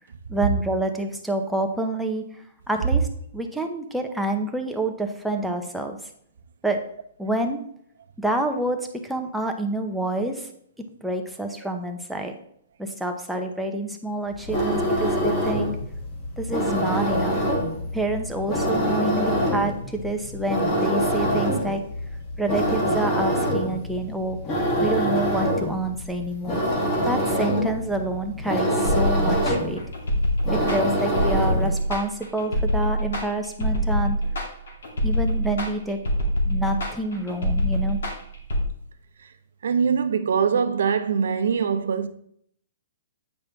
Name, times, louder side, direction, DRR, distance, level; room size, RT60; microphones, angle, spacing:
voice 1, 0.3-2.3 2.7-3.1 3.3-6.0 6.6-6.8 7.2-7.6 8.2-8.8 9.0-10.5 10.8-12.3 12.8-15.7 16.4-17.5 17.9-21.8 22.4-24.4 24.8-26.6 27.0-29.8 30.5-34.2 35.0-36.0 36.5-38.0, right 2 dB, ahead, 0.6 m, -28 dB
sound 1, 14.3-31.8, equal, 20° left, 1.5 m, -25 dB
sound 2, 28.8-38.7, equal, 85° left, 2.6 m, -25 dB
voice 2, 39.6-42.1, right 6 dB, 75° right, 0.7 m, -23 dB
8.7 x 5.2 x 3.4 m
hypercardioid pair, 165°, 0 cm